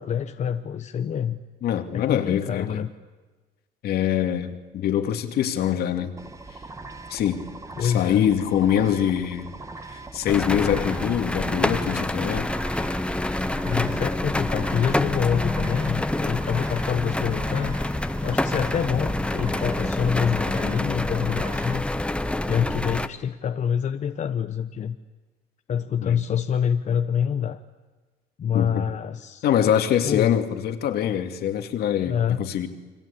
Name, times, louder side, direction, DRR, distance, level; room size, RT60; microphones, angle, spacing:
voice 1, 0.0-1.4 1.9-2.9 7.8-8.3 13.6-17.8 18.2-21.8 22.5-25.0 25.7-27.6 28.4-29.4 30.0-30.4 32.1-32.4, left 8 dB, 45° left, 8 dB, 1.0 m, -26 dB
voice 2, 1.6-2.7 3.8-6.1 7.1-7.4 7.8-9.5 9.9-12.5 26.0-26.2 28.5-28.8 29.4-32.7, left 10 dB, 70° left, 7 dB, 2.5 m, -24 dB
sound 1, 6.2-21.8, right 3 dB, 20° right, 2.0 m, -41 dB
sound 2, 10.3-23.1, left 1 dB, 5° left, 1.2 m, -27 dB
29.5 x 23.0 x 8.6 m, 1.3 s
cardioid pair, 110°, 17 cm